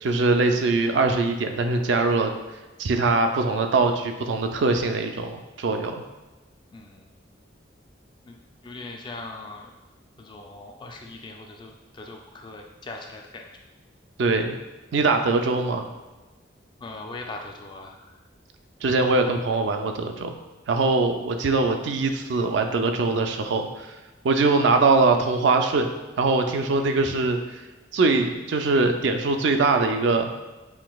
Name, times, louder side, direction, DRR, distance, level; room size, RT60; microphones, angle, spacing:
voice 1, 0.0-2.3 2.8-6.0 14.2-14.6 14.9-15.9 18.8-20.3 20.7-23.9 24.2-27.6 27.9-30.3, right 3 dB, 65° right, 5 dB, 0.4 m, -22 dB
voice 2, 6.7-7.1 8.2-9.7 10.2-13.4 16.8-18.2, left 2 dB, 25° left, 2 dB, 0.3 m, -40 dB
5.8 x 2.6 x 2.3 m, 1.2 s
head